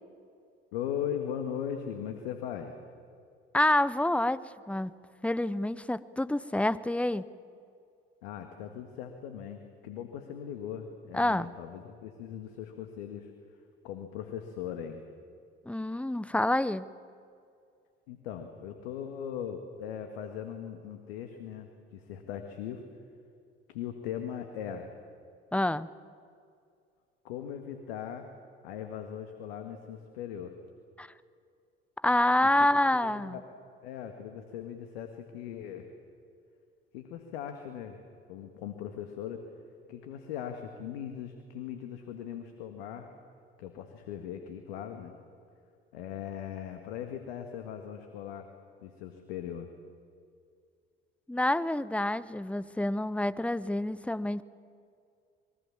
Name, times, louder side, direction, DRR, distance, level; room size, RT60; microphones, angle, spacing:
voice 1, 0.7-2.8 8.2-13.3 13.8-15.0 18.1-22.8 23.7-24.9 27.2-28.3 28.6-30.6 32.6-32.7 32.9-33.4 33.8-35.9 36.9-38.0 38.3-39.4 39.9-43.1 43.6-45.2 45.9-48.5 48.8-49.7, left 9 dB, 75° left, 6 dB, 1.8 m, -39 dB
voice 2, 3.5-4.4 4.7-4.9 5.2-7.2 11.1-11.5 15.7-16.9 25.5-25.9 31.0-31.1 32.0-33.4 51.3-54.4, left 1 dB, 5° left, 17 dB, 0.9 m, -27 dB
27.5 x 22.0 x 7.4 m, 2.3 s
hypercardioid pair, 55°, 31 cm